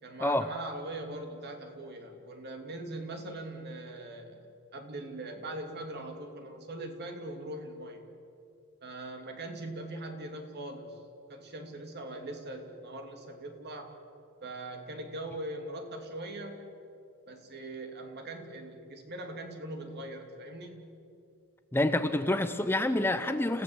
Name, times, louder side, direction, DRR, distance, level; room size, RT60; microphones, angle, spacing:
voice 1, 0.0-4.5 4.7-8.1 8.8-11.0 11.3-13.9 14.4-16.6 17.3-20.8, right 1 dB, 50° right, 4 dB, 2.7 m, -41 dB
voice 2, 21.7-23.6, left 1 dB, 10° left, 9 dB, 0.7 m, -27 dB
30.0 x 16.5 x 8.0 m, 2.6 s
head